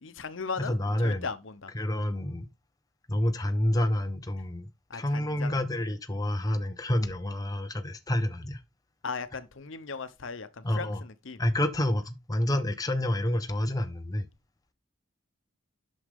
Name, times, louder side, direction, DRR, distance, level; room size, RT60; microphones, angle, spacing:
voice 1, 0.0-1.7 4.9-5.6 9.0-11.4, left 4 dB, 70° left, 0.9 m, -37 dB
voice 2, 0.7-1.2 1.7-2.5 3.1-8.6 10.6-11.0 11.4-14.3, left 1 dB, 20° left, 0.7 m, -28 dB
8.1 x 6.4 x 3.6 m
head